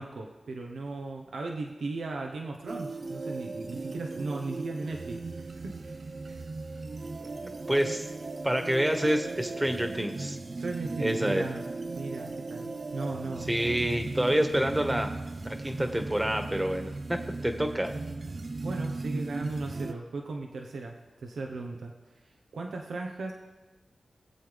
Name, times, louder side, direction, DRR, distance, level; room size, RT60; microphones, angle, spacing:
voice 1, 0.0-6.4 6.7-6.9 7.8-8.0 10.5-11.6 11.9-13.5 18.6-21.9 22.5-23.3, right 3 dB, 85° right, 1 dB, 1.0 m, -37 dB
sound 1, 2.7-19.9, right 3 dB, 55° right, 0.6 m, -37 dB
voice 2, 7.7-8.1 8.4-10.4 11.0-11.5 13.5-15.2 15.4-17.9, right 1 dB, 15° right, 5 dB, 1.5 m, -28 dB
22.0 x 8.0 x 3.5 m, 1.2 s
cardioid pair, 50°, 0 cm